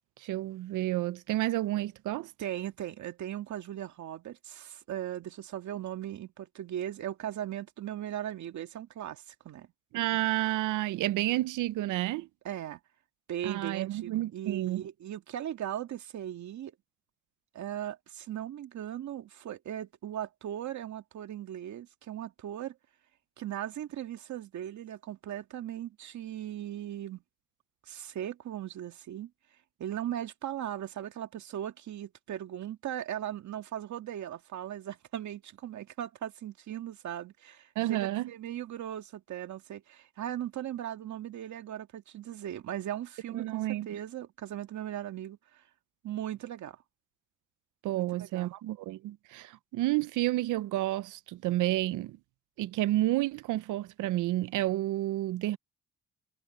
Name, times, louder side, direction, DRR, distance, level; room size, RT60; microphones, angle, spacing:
voice 1, 0.2-2.3 9.9-12.3 13.4-14.9 37.8-38.3 43.3-44.0 47.8-52.2 52.6-55.6, right 15 dB, 85° right, 0.7 m, -30 dB
voice 2, 2.4-9.7 12.4-12.8 13.3-16.7 17.5-22.8 23.4-27.2 27.9-29.3 29.8-45.6 46.0-46.8 47.9-48.5, right 11 dB, 70° right, 2.1 m, -38 dB
cardioid pair, 90°, 30 cm